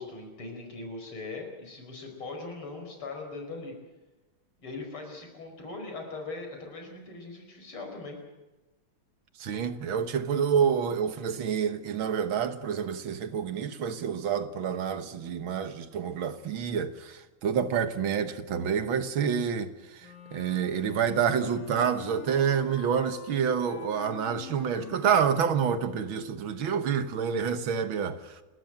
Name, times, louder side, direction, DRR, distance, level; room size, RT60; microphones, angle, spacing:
voice 1, 0.0-3.7 4.6-8.2, left 3 dB, 85° left, 5.7 m, -40 dB
voice 2, 9.4-28.4, right 7 dB, 70° right, 2.0 m, -28 dB
Wind instrument woodwind instrument, 20.0-25.9, left 9 dB, 55° left, 2.2 m, -46 dB
29.0 x 13.5 x 9.0 m
omnidirectional pair, 2.3 m